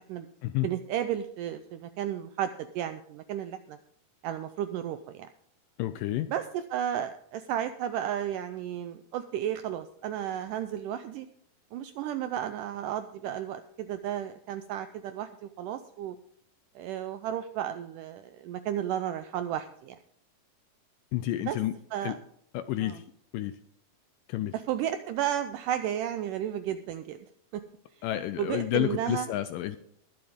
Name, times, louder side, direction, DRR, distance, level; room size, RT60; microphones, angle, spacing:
voice 1, 0.6-3.8 4.2-5.3 6.3-11.3 11.7-16.2 16.8-20.0 21.4-21.6 21.9-22.1 22.8-23.0 24.5-27.2 27.5-27.6 28.4-29.3, right 10 dB, 80° right, 10 dB, 1.9 m, -33 dB
voice 2, 5.8-6.3 21.1-21.7 22.0-22.2 22.5-23.0 23.3-23.5 24.3-24.5 28.0-29.8, left 14 dB, 80° left, 11 dB, 2.0 m, -30 dB
21.5 x 7.8 x 3.6 m, 0.69 s
omnidirectional pair, 4.4 m